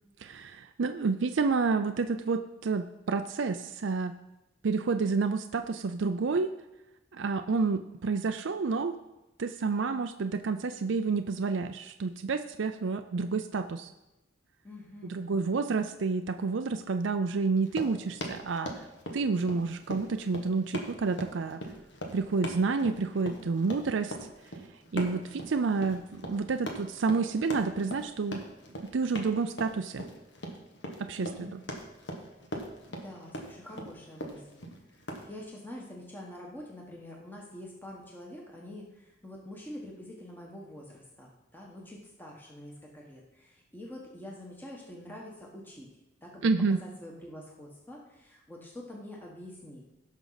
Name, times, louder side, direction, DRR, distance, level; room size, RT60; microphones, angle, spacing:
voice 1, 0.2-4.1 4.6-6.5 7.1-9.0 9.4-13.9 15.0-18.9 19.1-21.6 22.1-24.1 24.9-28.4 28.9-30.1 31.0-31.6 46.4-46.8, right 4 dB, 70° right, 7 dB, 0.5 m, -29 dB
voice 2, 14.6-15.3 31.2-31.7 32.9-34.6 34.9-45.9 46.2-49.8, left 1 dB, 10° left, -2 dB, 1.4 m, -46 dB
Run, 17.6-35.3, equal, 65° left, 1.7 m, -40 dB
17.0 x 6.3 x 4.1 m, 0.98 s
head